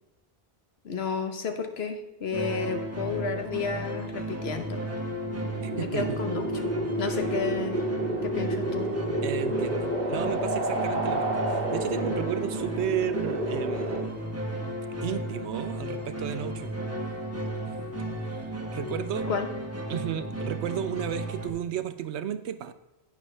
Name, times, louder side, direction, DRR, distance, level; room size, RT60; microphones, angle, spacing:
voice 1, 0.8-4.9 5.8-6.7 7.0-7.8 8.2-8.9 19.3-19.5, left 5 dB, 70° left, 6 dB, 1.2 m, -32 dB
sound 1, 2.3-21.5, right 1 dB, 15° right, 1.1 m, -34 dB
sound 2, 5.2-14.0, right 1 dB, 40° right, 1.3 m, -30 dB
voice 2, 5.6-6.2 7.0-7.2 9.2-14.0 15.0-16.8 17.7-17.8 18.2-19.3 19.9-22.7, right 10 dB, 85° right, 12 dB, 1.0 m, -33 dB
10.5 x 8.9 x 3.3 m, 0.98 s
omnidirectional pair, 1.1 m